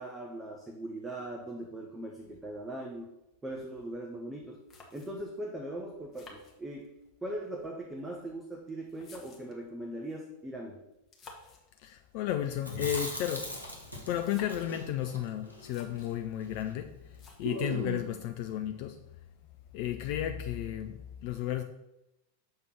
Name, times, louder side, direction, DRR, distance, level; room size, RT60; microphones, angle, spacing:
voice 1, 0.0-3.1 3.4-4.6 4.9-6.9 7.2-10.8, right 1 dB, 10° right, 0.8 m, -40 dB
sound 1, 4.7-5.4 6.1-7.1 8.0-9.7 10.9-11.7 12.6-13.4 14.1-14.7 15.3-15.4 15.5-16.2 17.1-17.7, left 3 dB, 25° left, 1.3 m, -54 dB
voice 2, 11.8-13.6 14.1-19.0 19.7-21.6, left 11 dB, 45° left, 0.4 m, -33 dB
Chewing mastication, 12.6-16.8 17.0-17.1 17.4-18.2, equal, 85° right, 1.4 m, -39 dB
6.5 x 3.5 x 5.8 m
figure-of-eight pair, 90°, 0 cm